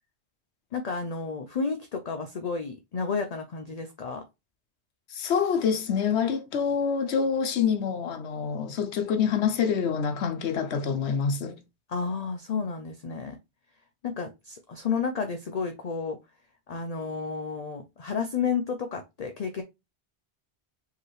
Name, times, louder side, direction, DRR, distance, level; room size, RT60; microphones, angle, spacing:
voice 1, 0.7-4.2 11.9-13.4 14.0-16.2 16.7-19.6, left 5 dB, 50° left, 0.5 m, -31 dB
voice 2, 5.1-11.6, left 6 dB, 80° left, 1.0 m, -26 dB
4.7 x 3.0 x 3.1 m
omnidirectional pair, 1.1 m